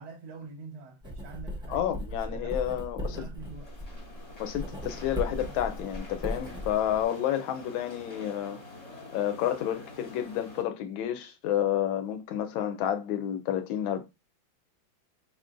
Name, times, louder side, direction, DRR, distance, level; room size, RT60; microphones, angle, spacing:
voice 1, 0.0-2.0 2.3-2.5 3.0-3.6 6.9-7.1, right 4 dB, 60° right, 1.1 m, -45 dB
Writing, 1.0-7.0, left 1 dB, 5° right, 0.4 m, -37 dB
voice 2, 1.7-3.2 4.4-8.6 9.1-14.0, left 11 dB, 80° left, 1.4 m, -30 dB
sound 1, 3.4-10.6, left 2 dB, 25° left, 1.0 m, -47 dB
4.8 x 3.7 x 2.5 m
omnidirectional pair, 2.2 m